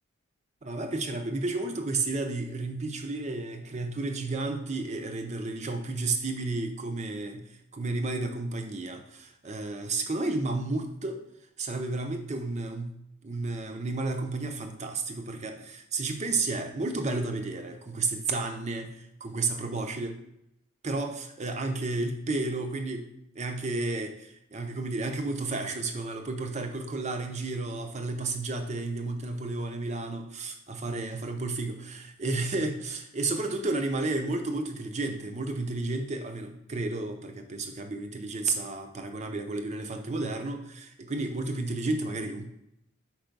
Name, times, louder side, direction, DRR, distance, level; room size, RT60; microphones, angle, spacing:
voice 1, 0.6-11.2 11.6-20.2 20.8-23.1 23.3-42.5, right 3 dB, 35° right, 6 dB, 0.6 m, -32 dB
4.8 x 4.6 x 5.2 m, 0.78 s
head